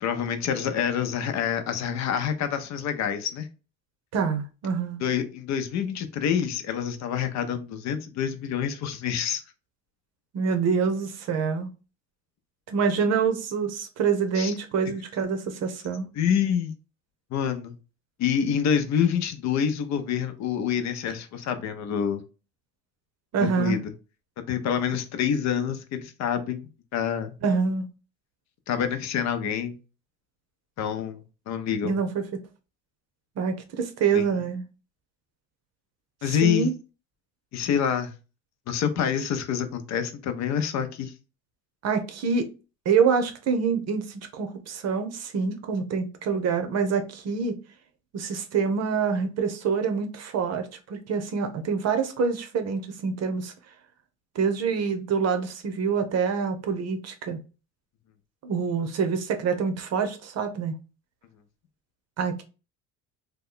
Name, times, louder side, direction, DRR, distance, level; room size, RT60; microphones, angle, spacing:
voice 1, 0.0-3.5 5.0-9.4 14.3-14.5 16.2-16.7 17.3-17.7 18.2-22.2 23.4-23.9 24.4-27.4 28.7-29.8 30.8-31.9 34.1-34.3 36.2-36.7 37.5-38.1 38.7-41.1, left 8 dB, 55° left, 0.6 m, -27 dB
voice 2, 4.1-5.0 10.3-11.7 12.7-16.1 23.3-23.8 27.4-27.9 31.8-32.2 33.4-34.6 36.4-36.7 41.8-42.5 42.8-47.6 48.1-53.5 54.3-57.4 58.4-60.7 62.2-62.4, right 5 dB, 50° right, 0.7 m, -26 dB
2.9 x 2.2 x 3.7 m
supercardioid pair, 100°, 34 cm